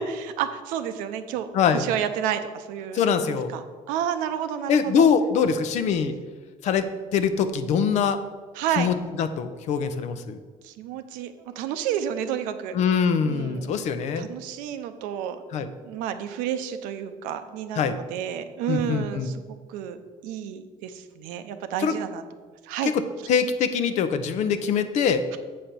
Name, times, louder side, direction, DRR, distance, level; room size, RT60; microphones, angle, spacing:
voice 1, 0.0-5.1 8.5-8.9 10.6-12.7 13.2-13.7 14.2-19.4 19.7-22.2 22.6-22.9, right 9 dB, 85° right, 9 dB, 0.7 m, -31 dB
voice 2, 1.5-1.8 2.9-3.5 4.7-6.1 6.6-6.9 7.1-8.2 8.8-10.4 12.7-14.3 15.5-15.7 17.8-18.0 18.7-19.3 21.8-22.0 22.8-22.9 23.3-25.2, left 6 dB, 60° left, 10 dB, 0.7 m, -23 dB
7.6 x 4.2 x 6.8 m, 1.4 s
cardioid pair, 115°, 13 cm